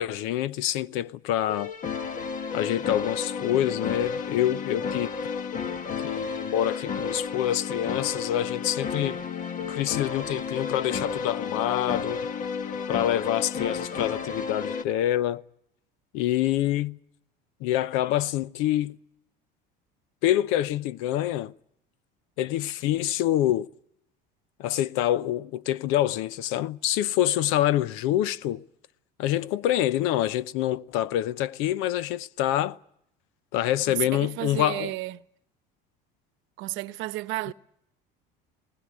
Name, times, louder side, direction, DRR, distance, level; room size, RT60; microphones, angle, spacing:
voice 1, 0.0-1.7 2.5-5.1 6.0-9.2 9.7-12.2 12.9-15.4 16.1-17.0 17.6-19.0 20.2-21.5 22.4-23.7 24.6-28.6 29.2-32.8 33.5-34.9, left 12 dB, 70° left, 0.8 m, -26 dB
sound 1, 1.5-14.8, left 5 dB, 40° left, 1.4 m, -32 dB
voice 2, 33.9-35.2 36.6-37.5, right 19 dB, 65° right, 1.0 m, -32 dB
20.0 x 18.5 x 9.6 m
supercardioid pair, 120°, 21 cm